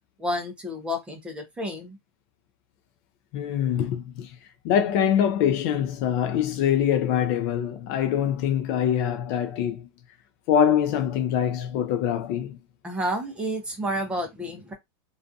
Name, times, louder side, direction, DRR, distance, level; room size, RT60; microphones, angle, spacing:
voice 1, 0.2-2.0 12.8-14.7, equal, 10° right, 0.6 m, -30 dB
voice 2, 3.3-4.3 4.6-9.9 10.5-12.6, left 9 dB, 40° left, 0.4 m, -24 dB
2.5 x 2.3 x 2.5 m
supercardioid pair, 165°, 13 cm